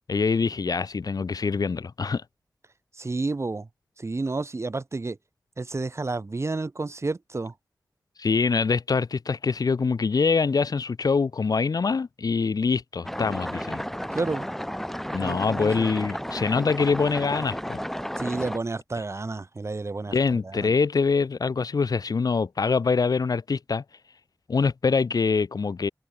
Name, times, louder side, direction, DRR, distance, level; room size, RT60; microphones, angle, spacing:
voice 1, 0.1-2.2 8.2-13.8 15.1-17.8 20.1-23.8 24.5-25.9, left 5 dB, 70° left, 1.8 m, -24 dB
voice 2, 2.9-3.7 4.0-5.2 5.6-7.5 14.1-14.5 15.2-15.9 18.2-20.7, right 3 dB, 45° right, 6.0 m, -30 dB
sound 1, 13.0-18.6, equal, 5° left, 6.1 m, -32 dB
open air
wide cardioid pair, 80°, 7 cm